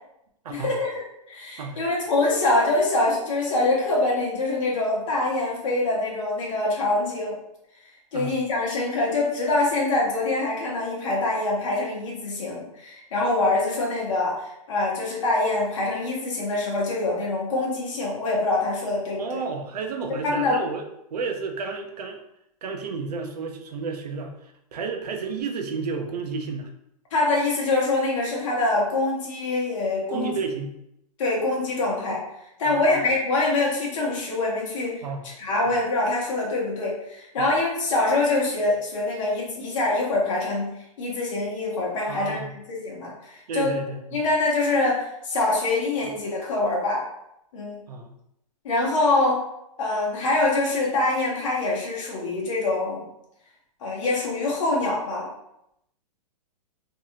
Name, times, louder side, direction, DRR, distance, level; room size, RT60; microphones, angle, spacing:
voice 1, 0.5-7.3 8.1-14.3 14.7-19.4 20.2-20.6 27.1-30.3 31.2-32.2 32.6-35.0 35.4-40.7 41.0-42.4 42.7-43.7 44.1-47.0 47.5-47.8 48.6-49.4 49.8-53.1 53.8-55.3, left 2 dB, 55° left, -4 dB, 1.1 m, -24 dB
voice 2, 19.2-20.8 21.1-22.2 22.6-26.7 30.1-30.7 32.7-33.0 35.0-35.3 37.4-37.5 42.1-42.5 43.5-44.2 46.0-46.1 47.9-48.1, right 5 dB, 90° right, 5 dB, 0.6 m, -32 dB
2.7 x 2.4 x 2.8 m, 0.80 s
hypercardioid pair, 170°, 20 cm